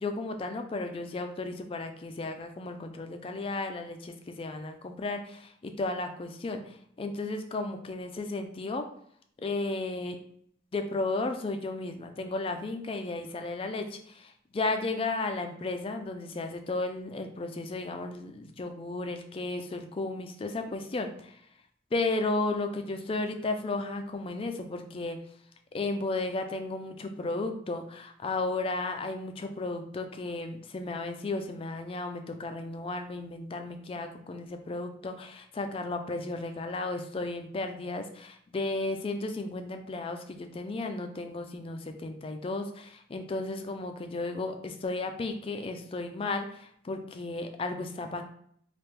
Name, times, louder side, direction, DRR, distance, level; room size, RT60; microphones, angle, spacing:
voice 1, 0.0-8.8 9.4-10.2 10.7-21.4 21.9-25.2 25.7-48.2, left 2 dB, 30° left, 6 dB, 0.3 m, -34 dB
3.3 x 2.4 x 3.2 m, 0.66 s
head